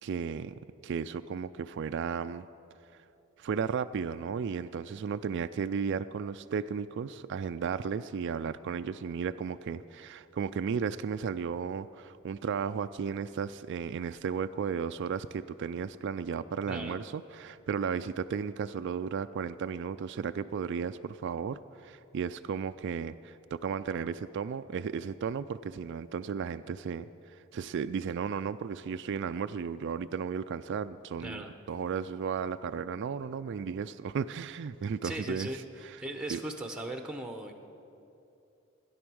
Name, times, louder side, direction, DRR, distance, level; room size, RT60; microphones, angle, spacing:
voice 1, 0.0-2.5 3.4-31.4 31.7-35.5 36.3-36.4, right 6 dB, 55° right, 11 dB, 0.3 m, -34 dB
voice 2, 16.7-17.0 31.2-31.5 35.0-35.6 36.0-37.5, right 1 dB, 5° right, 5 dB, 0.9 m, -38 dB
16.5 x 10.5 x 6.2 m, 2.8 s
head